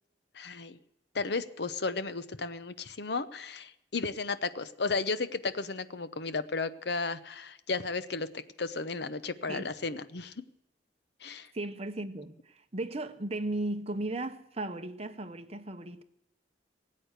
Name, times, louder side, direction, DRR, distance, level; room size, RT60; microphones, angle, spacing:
voice 1, 0.3-0.8 1.1-8.3 8.6-10.3 11.2-11.5, left 4 dB, 65° left, 0.8 m, -34 dB
voice 2, 11.5-16.0, right 2 dB, 35° right, 0.9 m, -36 dB
18.0 x 8.6 x 8.1 m
head